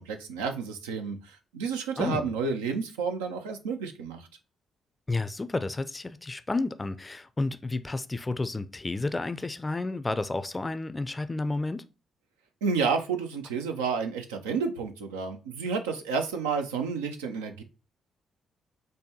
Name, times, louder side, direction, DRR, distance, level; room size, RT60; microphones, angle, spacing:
voice 1, 0.0-4.2 12.6-17.6, right 5 dB, 90° right, 0.4 m, -30 dB
voice 2, 2.0-2.3 5.1-11.8, left 2 dB, 25° left, 0.4 m, -31 dB
5.2 x 2.2 x 2.7 m
hypercardioid pair, 45°, 0 cm